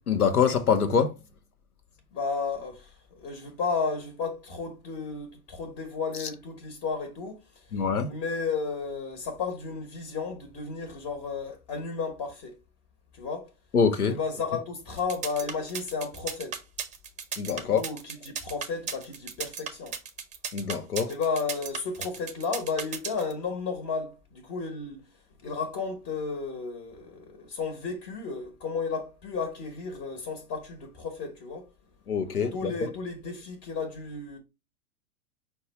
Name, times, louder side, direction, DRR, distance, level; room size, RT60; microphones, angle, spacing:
voice 1, 0.1-1.1 7.7-8.1 13.7-14.1 17.4-17.8 20.5-21.1 32.1-32.7, left 6 dB, 90° left, 0.9 m, -24 dB
voice 2, 2.1-12.6 13.1-13.5 14.1-16.6 17.6-20.0 21.1-25.0 25.4-31.7 32.5-34.4, left 4 dB, 35° left, 1.2 m, -33 dB
sound 1, 15.0-23.3, right 7 dB, 15° right, 0.6 m, -35 dB
5.4 x 2.3 x 4.0 m
hypercardioid pair, 105°, 43 cm